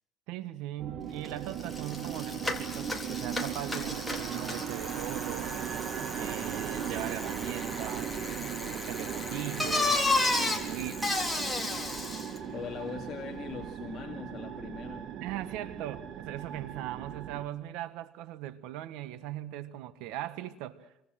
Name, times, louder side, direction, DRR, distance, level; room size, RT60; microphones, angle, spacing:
voice 1, 0.3-5.5 6.1-8.2 8.6-11.1 15.2-20.9, right 13 dB, 85° right, 1.4 m, -39 dB
sound 1, 0.8-17.4, right 9 dB, 50° right, 1.6 m, -38 dB
Bicycle, 1.2-1.3 1.6-12.4, left 2 dB, ahead, 3.9 m, -33 dB
voice 2, 12.5-15.1, left 6 dB, 35° left, 2.2 m, -41 dB
27.5 x 25.0 x 7.6 m
cardioid pair, 135°, 0 cm